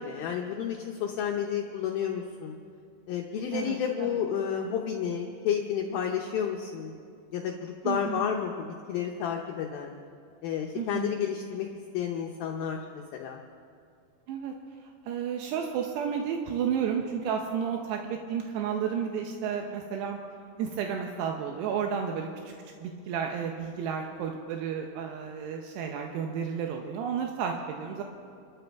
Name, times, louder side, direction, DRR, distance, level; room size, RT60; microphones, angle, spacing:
voice 1, 0.0-2.6 3.1-7.0 7.3-10.0 10.4-11.7 11.9-13.4, left 8 dB, 75° left, 1 dB, 2.3 m, -31 dB
voice 2, 3.5-4.1 7.8-8.3 10.7-11.2 14.3-14.5 14.8-20.2 20.6-22.5 22.8-28.0, right 7 dB, 80° right, 2 dB, 3.0 m, -32 dB
28.0 x 13.0 x 3.5 m, 2.4 s
omnidirectional pair, 4.8 m